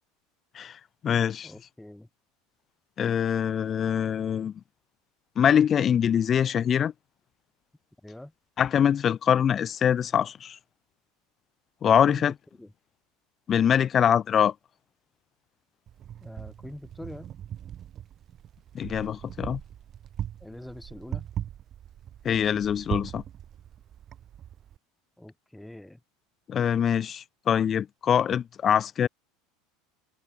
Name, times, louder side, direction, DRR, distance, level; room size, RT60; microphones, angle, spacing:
voice 1, 0.5-1.5 3.0-4.6 5.3-6.9 8.6-10.6 11.8-12.3 13.5-14.5 18.7-19.6 22.2-23.2 26.5-29.1, left 8 dB, 25° left, 1.9 m, -24 dB
voice 2, 1.4-2.1 8.0-8.3 12.1-12.2 12.6-12.7 16.2-17.3 20.4-21.3 25.2-26.0, left 1 dB, 5° left, 6.2 m, -43 dB
Wind, 15.9-24.8, right 10 dB, 25° right, 7.7 m, -39 dB
supercardioid pair, 170°, 0 cm